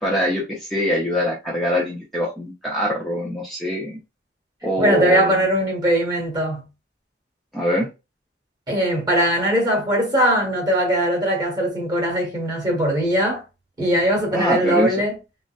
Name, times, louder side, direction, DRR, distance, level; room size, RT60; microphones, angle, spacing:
voice 1, 0.0-4.0 4.6-5.4 7.5-7.9 14.3-14.9, left 1 dB, ahead, 0.6 m, -23 dB
voice 2, 4.8-6.7 8.7-13.4 13.8-15.2, right 1 dB, 25° right, 1.4 m, -20 dB
3.8 x 2.1 x 2.4 m
head